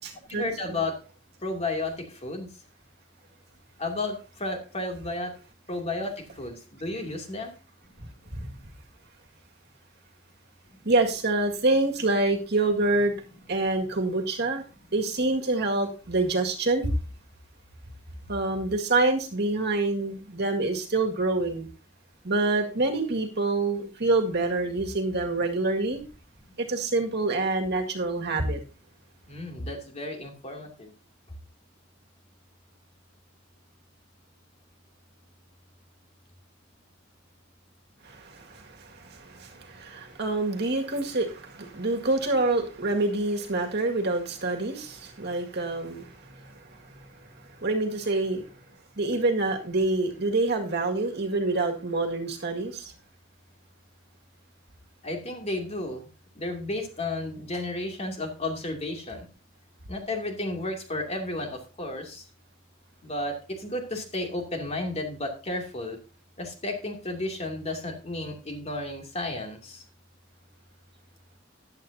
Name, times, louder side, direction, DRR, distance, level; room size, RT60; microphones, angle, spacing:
voice 1, 0.3-1.0 1.4-2.5 3.8-5.4 5.7-7.6 7.9-8.0 8.6-8.7 29.3-30.9 55.0-56.0 56.3-59.3 59.9-62.2 63.0-66.0 66.4-69.8, left 2 dB, 35° left, 2 dB, 2.6 m, -33 dB
voice 2, 10.8-13.1 13.5-14.6 14.9-16.9 18.3-21.7 22.2-26.0 26.6-28.6 38.0-46.9 47.6-48.4 49.0-52.9, right 2 dB, 55° right, 3 dB, 2.0 m, -26 dB
14.5 x 10.5 x 2.8 m, 0.33 s
head